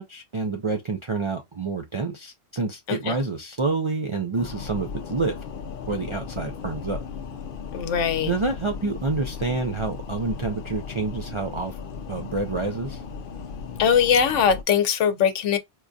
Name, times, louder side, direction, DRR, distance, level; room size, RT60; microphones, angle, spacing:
voice 1, 0.0-5.4 5.9-7.0 8.2-11.8 12.1-13.0, right 3 dB, 55° right, 0.3 m, -28 dB
sound 1, 4.3-14.6, left 5 dB, 60° left, 0.7 m, -36 dB
voice 2, 7.7-8.3 13.8-15.6, left 7 dB, 90° left, 1.0 m, -21 dB
4.4 x 2.6 x 2.3 m
omnidirectional pair, 1.2 m